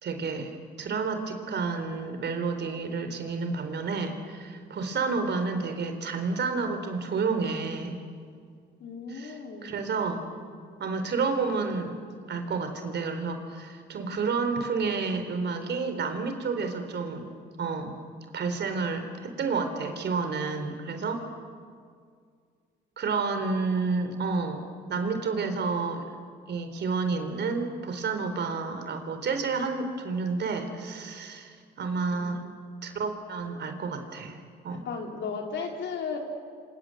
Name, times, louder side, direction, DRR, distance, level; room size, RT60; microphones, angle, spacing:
voice 1, 0.0-8.0 9.1-9.3 9.6-10.2 10.8-11.9 12.3-18.0 18.3-21.3 23.0-26.1 26.5-32.4 32.8-34.4 34.6-34.9, right 4 dB, 60° right, 7 dB, 4.1 m, -30 dB
voice 2, 8.8-9.7 32.1-32.4 34.7-36.2, left 5 dB, 70° left, 1 dB, 4.8 m, -35 dB
27.5 x 26.5 x 7.9 m, 2.1 s
cardioid pair, 90°, 20 cm